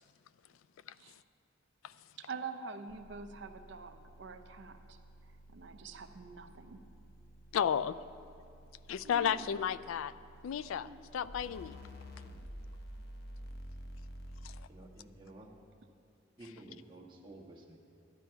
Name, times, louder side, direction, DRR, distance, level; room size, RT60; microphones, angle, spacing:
voice 1, 2.2-5.0 5.5-6.8 9.0-9.5 10.8-11.0, right 5 dB, 60° right, 7 dB, 0.5 m, -46 dB
sound 1, 2.9-14.6, equal, 50° left, 0.8 m, -51 dB
voice 2, 7.5-8.0 8.9-10.1 10.4-11.8 14.4-14.6, left 8 dB, 85° left, 16 dB, 0.3 m, -33 dB
voice 3, 14.7-15.5 16.4-17.8, right 1 dB, 25° right, -2 dB, 1.3 m, -52 dB
12.0 x 10.5 x 4.6 m, 2.5 s
head